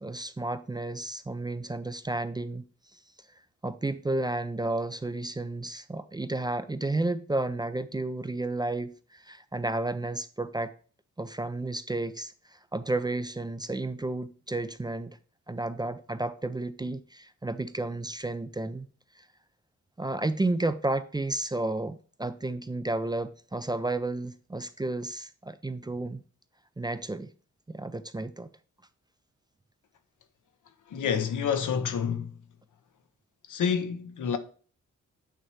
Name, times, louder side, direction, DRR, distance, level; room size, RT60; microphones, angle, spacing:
voice 1, 0.0-2.7 3.6-10.7 11.2-15.2 15.5-18.9 19.2-19.3 20.0-26.2 26.8-27.3 27.7-28.5, right 2 dB, 15° right, 0.4 m, -32 dB
voice 2, 30.9-32.3 33.5-34.4, left 7 dB, 80° left, 0.9 m, -28 dB
8.8 x 3.2 x 4.6 m
cardioid pair, 80°, 30 cm